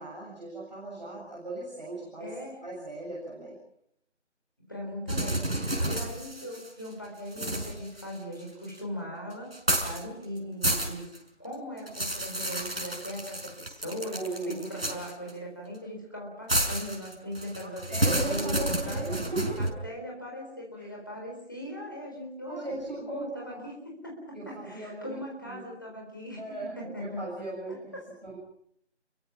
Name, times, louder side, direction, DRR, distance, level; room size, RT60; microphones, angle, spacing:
voice 1, 0.0-2.4 2.6-3.6 14.1-14.9 17.6-19.8 20.8-20.9 22.4-23.6 24.3-25.6 26.4-28.0 28.2-28.4, right 2 dB, 35° right, -5 dB, 7.4 m, -38 dB
voice 2, 2.2-2.6 4.7-9.5 9.8-11.1 11.4-19.1 19.6-22.7 23.0-27.2 27.7-28.0, equal, 15° left, -1 dB, 4.0 m, -39 dB
sound 1, 5.1-6.9 7.3-8.8 9.5-10.0 10.4-11.2 11.5-15.3 16.5-19.7, right 1 dB, 55° right, 5.7 m, -30 dB
29.5 x 23.0 x 6.0 m, 0.69 s
figure-of-eight pair, 180°, 36 cm